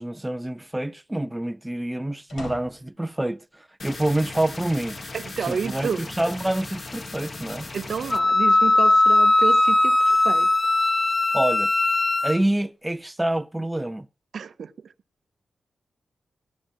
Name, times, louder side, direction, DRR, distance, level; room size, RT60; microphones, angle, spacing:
voice 1, 0.0-5.0 5.5-7.7 11.3-11.7 12.2-14.1, right 1 dB, 10° right, 0.5 m, -27 dB
sound 1, 2.3-3.0 4.0-4.6 5.2-5.3 6.5-7.3, left 1 dB, 70° left, 4.7 m, -42 dB
sound 2, 3.8-8.2, left 3 dB, 45° left, 1.4 m, -38 dB
voice 2, 5.1-6.0 7.7-10.5 14.3-14.7, right 6 dB, 70° right, 0.6 m, -30 dB
Wind instrument woodwind instrument, 8.1-12.4, left 2 dB, 25° left, 0.7 m, -19 dB
16.0 x 11.5 x 2.9 m
cardioid pair, 85°, 0 cm